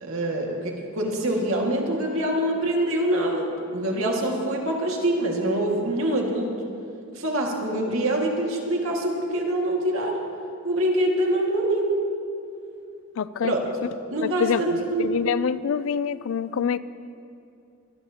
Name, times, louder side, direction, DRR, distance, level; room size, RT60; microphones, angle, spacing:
voice 1, 0.0-6.5 7.1-10.2 10.6-12.0 13.4-13.6 14.1-15.2, right 1 dB, 70° right, -1 dB, 2.0 m, -25 dB
voice 2, 13.2-13.5 14.2-16.8, left 7 dB, 70° left, 16 dB, 0.4 m, -26 dB
24.5 x 11.0 x 2.9 m, 2.6 s
head